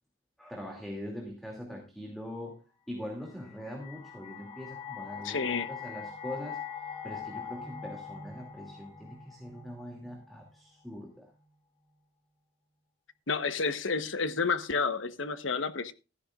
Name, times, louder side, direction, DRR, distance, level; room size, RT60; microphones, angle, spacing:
voice 1, 0.4-2.6 2.9-6.6 7.0-11.3, left 1 dB, ahead, 2.5 m, -42 dB
sound 1, 3.2-10.4, left 6 dB, 30° left, 2.9 m, -42 dB
voice 2, 5.2-5.7 13.3-15.9, left 4 dB, 80° left, 1.1 m, -30 dB
15.0 x 13.5 x 2.5 m
head